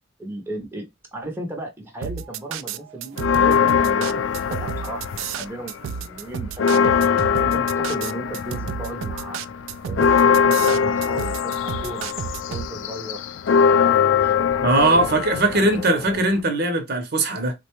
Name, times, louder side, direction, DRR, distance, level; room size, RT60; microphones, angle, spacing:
voice 1, 0.2-0.9 1.1-6.9 7.3-9.4 9.8-12.1 12.5-13.2 13.8-15.2 15.5-16.2, right 1 dB, 10° right, 0.6 m, -35 dB
sound 1, 2.0-12.7, right 7 dB, 90° right, 0.3 m, -31 dB
sound 2, 3.2-5.5 5.9-16.4, left 7 dB, 75° left, 0.4 m, -21 dB
voice 2, 14.6-17.5, right 2 dB, 55° right, 0.7 m, -20 dB
3.8 x 2.2 x 2.9 m
head